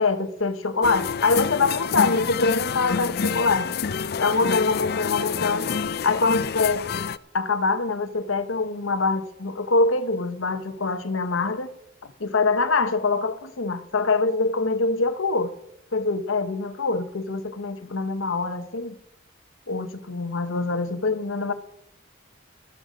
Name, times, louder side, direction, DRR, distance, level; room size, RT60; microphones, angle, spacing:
voice 1, 0.0-3.7 4.2-6.9 7.3-11.7 12.0-15.5 15.9-18.9 19.7-21.5, left 3 dB, 85° left, 1.0 m, -24 dB
sound 1, 0.8-7.2, left 6 dB, 50° left, 0.4 m, -28 dB
14.0 x 13.0 x 5.1 m
head